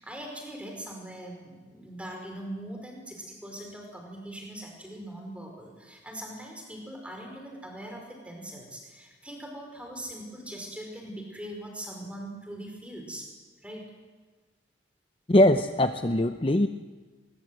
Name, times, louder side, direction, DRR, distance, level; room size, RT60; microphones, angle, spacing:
voice 1, 0.0-13.2 13.6-13.8, right 1 dB, 5° right, 1 dB, 5.2 m, -41 dB
voice 2, 15.3-16.7, left 1 dB, 30° left, 8 dB, 0.7 m, -21 dB
24.5 x 22.0 x 7.9 m, 1.3 s
head